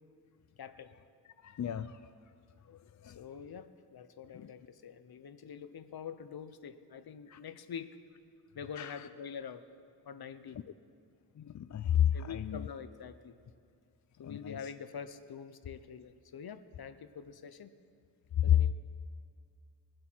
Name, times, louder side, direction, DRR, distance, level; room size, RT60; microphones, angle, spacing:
voice 1, 0.6-0.9 3.0-8.0 8.5-9.6 10.0-10.6 12.1-13.4 14.2-17.8 18.4-18.7, left 7 dB, 60° left, 12 dB, 0.8 m, -45 dB
voice 2, 1.4-2.0 2.7-3.2 4.3-4.5 7.3-7.4 8.8-9.1 11.4-12.7 14.2-14.6 18.4-18.7, left 10 dB, 45° left, 12 dB, 0.4 m, -31 dB
22.5 x 7.8 x 4.5 m, 2.3 s
cardioid pair, 65°, 41 cm